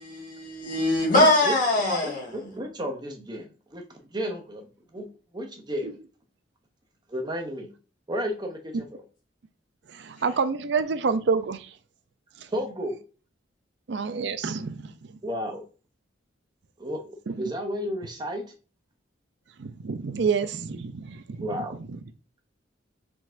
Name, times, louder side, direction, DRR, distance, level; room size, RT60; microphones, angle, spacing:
voice 1, 0.0-2.2, left 1 dB, 45° left, 1.8 m, -22 dB
voice 2, 1.1-1.6 1.9-5.1 5.3-5.9 7.1-7.7 8.1-9.0 12.5-13.0 15.2-15.6 16.8-18.4 21.4-21.8, equal, 20° right, 0.8 m, -33 dB
voice 3, 9.9-11.8 12.4-12.5 13.9-15.2 17.3-17.4 19.6-21.5 21.8-22.0, right 5 dB, 65° right, 0.5 m, -28 dB
4.7 x 3.9 x 2.6 m
head